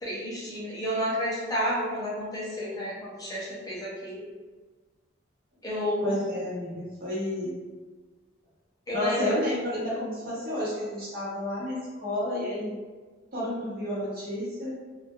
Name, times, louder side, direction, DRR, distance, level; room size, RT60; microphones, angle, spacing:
voice 1, 0.0-4.3 5.6-6.2 8.9-9.3, equal, 20° left, -7 dB, 0.4 m, -31 dB
voice 2, 6.0-7.5 8.9-12.7 13.3-14.7, left 1 dB, 45° right, -8 dB, 0.9 m, -31 dB
2.2 x 2.2 x 2.8 m, 1.4 s
head